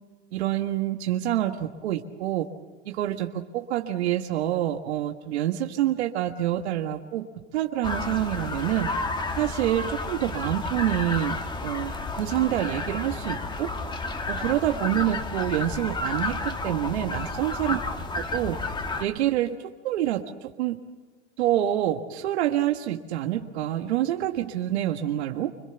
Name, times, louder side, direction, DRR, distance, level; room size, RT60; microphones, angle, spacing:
voice 1, 0.3-2.5 2.9-7.3 7.5-8.9 9.4-13.7 14.3-17.8 18.1-18.6 19.0-19.6 19.8-20.8 21.4-25.5, right 12 dB, 75° right, 5 dB, 1.6 m, -27 dB
sound 1, 7.8-19.0, left 3 dB, 15° left, 1.9 m, -31 dB
26.0 x 22.0 x 7.0 m, 1.3 s
supercardioid pair, 125°, 33 cm